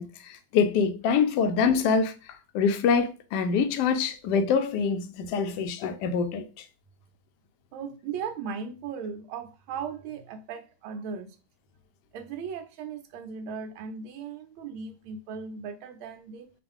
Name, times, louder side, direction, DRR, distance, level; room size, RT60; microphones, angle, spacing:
voice 1, 0.0-2.1 2.5-6.6, left 5 dB, 70° left, 1.0 m, -25 dB
voice 2, 7.7-11.4 12.1-16.5, right 6 dB, 80° right, 1.5 m, -37 dB
5.2 x 2.4 x 3.6 m
omnidirectional pair, 2.2 m